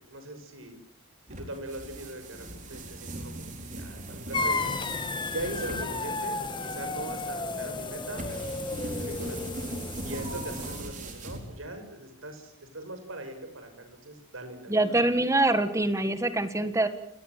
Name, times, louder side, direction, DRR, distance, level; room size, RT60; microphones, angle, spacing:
voice 1, 0.1-0.8 1.3-4.7 5.3-9.4 10.0-15.0, right 1 dB, 70° right, 7 dB, 6.2 m, -41 dB
sound 1, 1.3-11.9, right 1 dB, 40° right, 4.5 m, -40 dB
sound 2, 4.3-10.8, left 3 dB, 25° left, 2.3 m, -33 dB
voice 2, 14.7-16.9, right 2 dB, 15° right, 10 dB, 1.6 m, -24 dB
29.5 x 19.0 x 7.6 m, 0.68 s
head